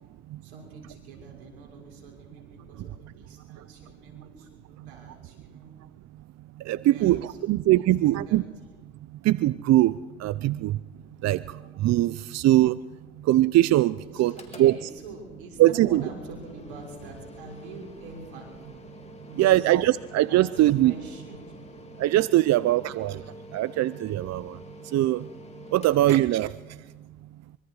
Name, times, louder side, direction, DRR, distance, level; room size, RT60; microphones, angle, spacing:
voice 1, 0.4-5.7 6.8-8.4 14.0-18.5 19.2-19.7 20.3-21.6 25.7-25.8, right 3 dB, 90° right, 0 dB, 6.4 m, -44 dB
voice 2, 6.7-8.4 9.2-9.9 10.2-10.8 11.2-11.4 11.8-12.8 13.3-14.3 14.6-14.8 15.6-16.0 19.4-20.9 22.0-23.2 23.5-24.6 24.9-25.2 25.7-26.5, right 15 dB, 55° right, 17 dB, 0.7 m, -21 dB
Mechanical fan, 14.2-27.0, left 1 dB, 20° left, 3.9 m, -48 dB
25.5 x 23.5 x 4.9 m, 1.2 s
hypercardioid pair, 70°, 32 cm